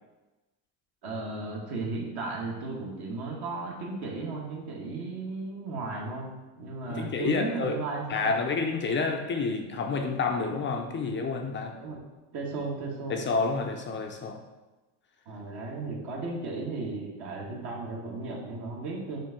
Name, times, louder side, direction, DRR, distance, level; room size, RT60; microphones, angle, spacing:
voice 1, 1.0-6.3 6.6-8.4 11.7-12.0 12.3-13.2 15.3-19.2, right 3 dB, 50° right, -2 dB, 1.4 m, -35 dB
voice 2, 6.9-7.8 8.1-11.7 13.1-14.4, left 4 dB, 25° left, 4 dB, 0.4 m, -29 dB
7.3 x 2.6 x 5.6 m, 1.1 s
cardioid pair, 140°, 47 cm